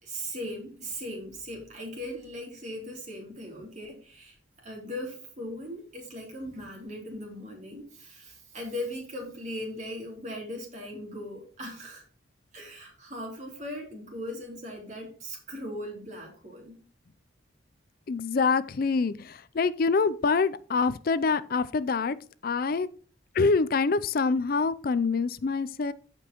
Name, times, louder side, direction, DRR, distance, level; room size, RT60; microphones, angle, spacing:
voice 1, 0.0-12.0 12.5-16.8, equal, 40° right, 0 dB, 3.5 m, -39 dB
voice 2, 18.1-22.2 22.4-22.9 23.3-25.9, left 4 dB, 50° left, 15 dB, 0.4 m, -25 dB
15.0 x 5.2 x 3.0 m, 0.40 s
head